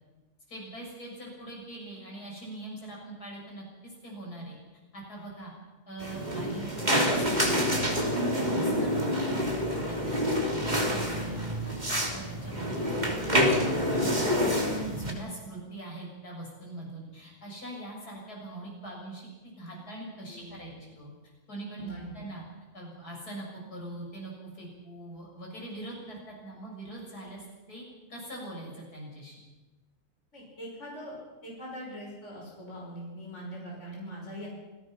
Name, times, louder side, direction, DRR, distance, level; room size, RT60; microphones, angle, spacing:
voice 1, 0.5-4.6 4.9-5.5 5.9-9.5 9.9-11.8 12.1-19.3 19.6-21.1 21.5-22.4 22.7-27.8 28.1-29.4, right 1 dB, 75° left, -2 dB, 7.5 m, -42 dB
sound 1, 6.0-15.1, equal, 25° right, 3.2 m, -27 dB
voice 2, 8.6-9.0 20.3-20.9 21.8-22.1 30.3-34.5, equal, 50° left, -3 dB, 6.0 m, -42 dB
27.5 x 17.5 x 5.9 m, 1.1 s
omnidirectional pair, 1.7 m